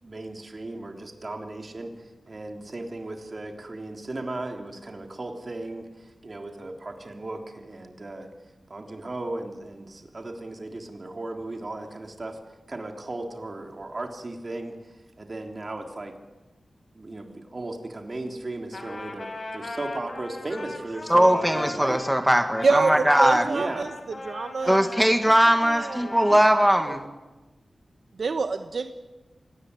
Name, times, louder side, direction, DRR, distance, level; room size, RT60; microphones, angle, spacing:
voice 1, 0.0-8.3 8.7-12.4 12.7-16.1 16.9-22.0 23.4-23.9, right 2 dB, 40° right, 3 dB, 3.5 m, -36 dB
Trumpet, 18.7-26.8, left 2 dB, 50° left, 4.6 m, -39 dB
voice 2, 21.1-23.4 24.7-27.0, equal, 5° right, 6 dB, 1.7 m, -20 dB
voice 3, 22.6-23.9 24.2-24.9 25.6-26.4 26.9-27.0 28.2-28.9, right 4 dB, 70° right, 8 dB, 1.1 m, -26 dB
25.0 x 18.5 x 9.7 m, 1.2 s
wide cardioid pair, 95°, 0 cm